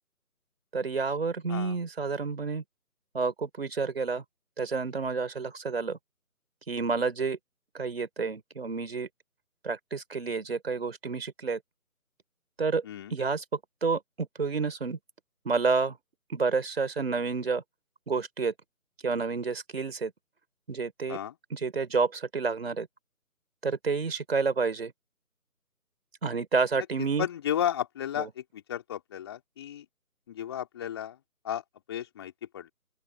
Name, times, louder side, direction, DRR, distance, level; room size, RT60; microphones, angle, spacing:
voice 1, 0.7-2.6 3.1-4.2 4.6-6.0 6.7-7.4 7.7-9.1 9.6-11.6 12.6-12.8 13.1-13.4 13.8-15.0 15.4-16.0 16.3-17.6 18.1-18.5 19.0-20.1 20.7-21.2 21.5-22.9 23.6-24.9 26.2-27.3 28.1-28.3, right 4 dB, 40° right, 5.1 m, -29 dB
voice 2, 27.2-28.3 28.5-29.9 30.3-31.2 31.4-31.6 31.9-32.7, left 10 dB, 15° left, 3.5 m, -33 dB
open air
figure-of-eight pair, 160°, 45 cm